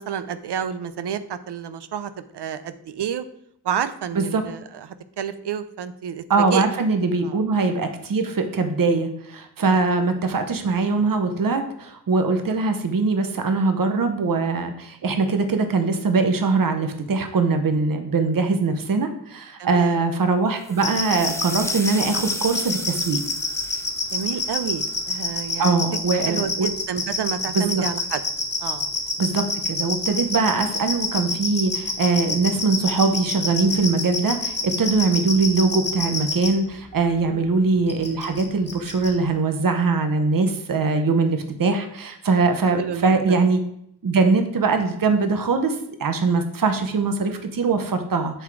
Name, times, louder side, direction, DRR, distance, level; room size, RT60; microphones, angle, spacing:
voice 1, 0.0-3.2 3.6-4.9 5.2-6.2 6.5-6.7 7.2-7.4 9.6-9.8 19.6-20.0 24.1-25.8 26.1-28.2 28.6-28.9 37.3-37.5 42.8-43.4, right 8 dB, 85° right, 12 dB, 0.6 m, -30 dB
voice 2, 6.3-23.2 25.6-26.7 27.5-27.8 29.2-43.6 44.0-48.4, right 4 dB, 55° right, 7 dB, 0.9 m, -22 dB
sound 1, 20.6-25.4, left 1 dB, 5° left, 0.5 m, -36 dB
sound 2, 20.8-36.5 37.9-38.4 38.7-39.1, left 3 dB, 25° left, 2.1 m, -26 dB
8.1 x 3.6 x 4.6 m, 0.73 s
wide cardioid pair, 75°, 40 cm